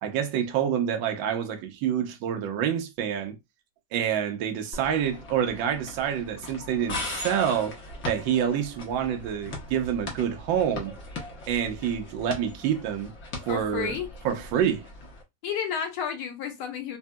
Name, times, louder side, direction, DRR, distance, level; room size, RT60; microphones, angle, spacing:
voice 1, 0.0-3.4 3.9-11.0 11.5-13.1 13.5-13.9 14.2-14.8, right 9 dB, 65° right, 0.9 m, -27 dB
sound 1, 4.7-15.2, left 2 dB, 30° left, 1.0 m, -39 dB
voice 2, 13.5-14.1 15.4-17.0, left 8 dB, 65° left, 1.1 m, -31 dB
2.7 x 2.6 x 2.2 m
cardioid pair, 140°, 40 cm